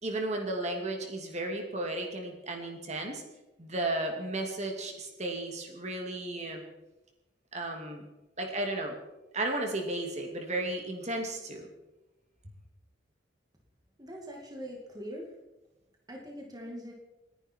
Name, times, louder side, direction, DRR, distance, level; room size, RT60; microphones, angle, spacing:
voice 1, 0.0-3.2 3.6-6.6 7.5-8.0 8.4-8.9 9.3-11.7, right 2 dB, 40° right, 2 dB, 2.5 m, -34 dB
voice 2, 14.0-15.3 16.1-16.9, equal, 20° right, 0 dB, 2.4 m, -42 dB
29.5 x 10.5 x 4.6 m, 1.0 s
head